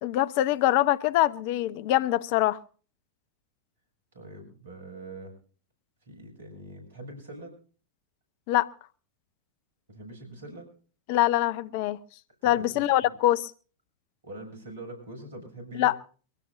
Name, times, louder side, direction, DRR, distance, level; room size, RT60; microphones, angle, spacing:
voice 1, 0.0-2.6 8.5-8.7 11.1-12.0 12.4-13.5 15.8-16.0, left 14 dB, 45° left, 0.7 m, -24 dB
voice 2, 4.1-5.3 6.1-7.6 9.9-10.7 12.4-13.1 14.2-15.9, right 1 dB, 65° right, 6.9 m, -43 dB
23.5 x 16.5 x 2.6 m
figure-of-eight pair, 90°, 0 cm